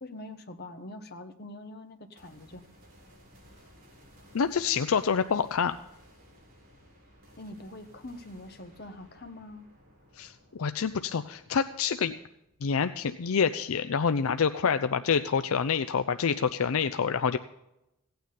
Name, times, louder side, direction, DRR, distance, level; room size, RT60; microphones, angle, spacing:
voice 1, 0.0-2.6 7.4-9.7, left 1 dB, 45° left, 6 dB, 1.3 m, -44 dB
sound 1, 2.2-13.5, equal, 45° right, 4.7 m, -58 dB
voice 2, 4.3-5.7 10.1-12.2 12.6-17.4, left 6 dB, 75° left, 10 dB, 0.5 m, -27 dB
16.5 x 9.2 x 5.2 m, 0.88 s
head